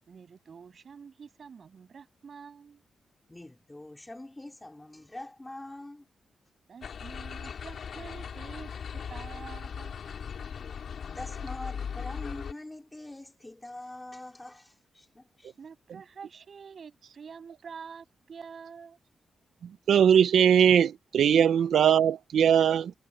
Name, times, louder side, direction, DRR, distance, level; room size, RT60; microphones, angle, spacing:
voice 1, 0.1-2.8 6.7-9.9 15.6-19.0, right 6 dB, 45° right, 7.2 m, -47 dB
voice 2, 3.3-6.1 7.4-7.6 11.1-15.5, left 1 dB, 10° left, 3.6 m, -44 dB
sound 1, 6.8-12.5, left 7 dB, 55° left, 3.5 m, -38 dB
voice 3, 19.9-22.9, right 8 dB, 75° right, 0.5 m, -20 dB
wide cardioid pair, 170°, 0 cm